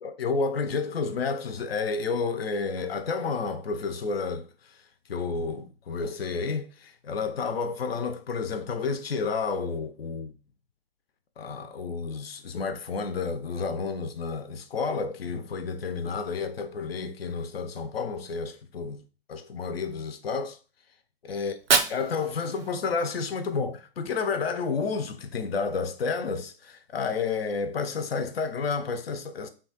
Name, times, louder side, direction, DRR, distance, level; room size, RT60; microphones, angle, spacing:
voice 1, 0.0-4.5 5.1-10.4 11.4-19.0 19.3-20.6 21.2-21.5 21.9-29.5, left 4 dB, 90° left, 0.5 m, -30 dB
Fire, 21.4-23.4, right 5 dB, 85° right, 0.5 m, -28 dB
2.8 x 2.3 x 2.7 m
hypercardioid pair, 130°, 29 cm